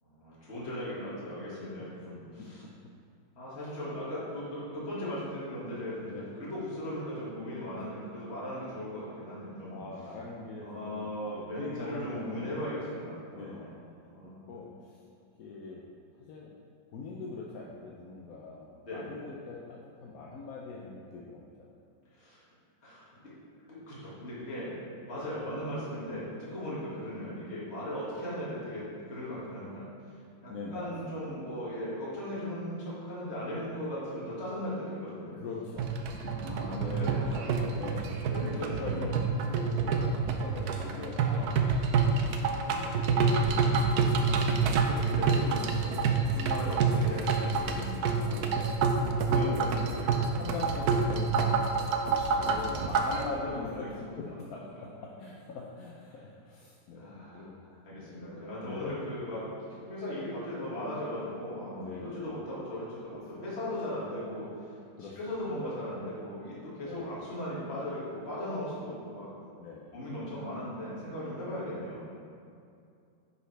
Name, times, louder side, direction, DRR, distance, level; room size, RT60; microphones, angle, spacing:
voice 1, 0.0-2.7 3.3-9.8 10.6-13.8 14.1-14.6 18.8-19.1 22.1-22.4 22.8-23.1 23.7-24.7 25.1-35.3 36.2-38.0 38.3-39.1 42.4-44.4 44.8-48.5 49.2-50.4 52.2-52.3 52.6-52.8 53.3-54.1 56.1-56.2 57.0-57.4 57.8-69.3 69.9-72.2, equal, 35° left, -8 dB, 2.1 m, -38 dB
voice 2, 2.4-2.9 6.0-6.2 9.7-12.6 13.3-13.8 14.5-15.0 15.4-15.8 16.2-16.5 16.9-21.8 30.5-31.2 35.3-35.9 36.4-37.1 37.7-38.4 38.8-39.2 39.5-40.0 40.2-42.3 48.3-48.7 49.0-49.3 49.5-49.7 50.4-51.9 52.4-54.6 55.0-57.5 57.9-59.1 61.7-62.2 63.4-63.5 65.0-65.2 66.8-67.1 69.6-69.9, left 4 dB, 65° left, -3 dB, 0.9 m, -42 dB
sound 1, 35.8-53.3, right 4 dB, 70° right, 1.0 m, -28 dB
9.6 x 5.5 x 3.3 m, 2.5 s
omnidirectional pair, 2.1 m